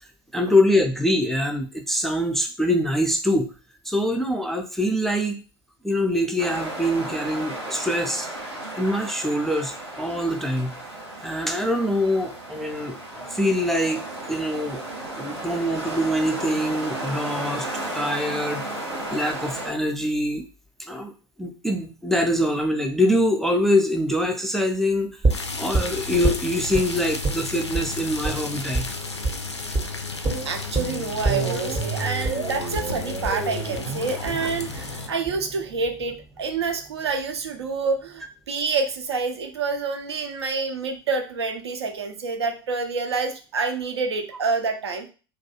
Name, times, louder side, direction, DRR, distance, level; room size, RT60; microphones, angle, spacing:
voice 1, 0.3-3.5 3.8-5.4 5.8-8.3 8.7-10.8 11.2-14.0 14.3-14.8 15.2-18.6 19.1-20.5 20.8-21.1 21.4-25.2 25.6-29.0, left 1 dB, ahead, 3 dB, 0.3 m, -24 dB
sound 1, 6.4-19.7, right 1 dB, 90° right, 1.1 m, -34 dB
sound 2, 25.2-26.9 27.2-27.4 27.7-27.9 28.2-28.4 28.7-28.9 29.2-29.4 29.7-29.9 30.2-36.2 36.5-36.6, right 3 dB, 25° right, 0.7 m, -27 dB
sound 3, 25.3-35.1, left 4 dB, 90° left, 0.4 m, -33 dB
voice 2, 30.5-45.1, right 4 dB, 75° right, 5 dB, 0.5 m, -27 dB
2.3 x 2.2 x 2.7 m, 0.35 s
figure-of-eight pair, 80°, 14 cm